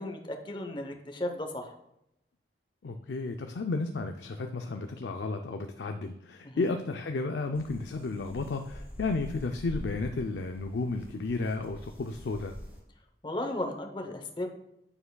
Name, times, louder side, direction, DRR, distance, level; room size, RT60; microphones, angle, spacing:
voice 1, 0.0-1.7 6.4-6.7 13.2-14.5, left 1 dB, 25° left, 4 dB, 0.7 m, -35 dB
voice 2, 2.8-12.5, left 3 dB, 75° left, 5 dB, 0.4 m, -33 dB
sound 1, 7.5-12.8, equal, 10° right, 2.1 m, -45 dB
8.8 x 6.9 x 2.3 m, 0.82 s
head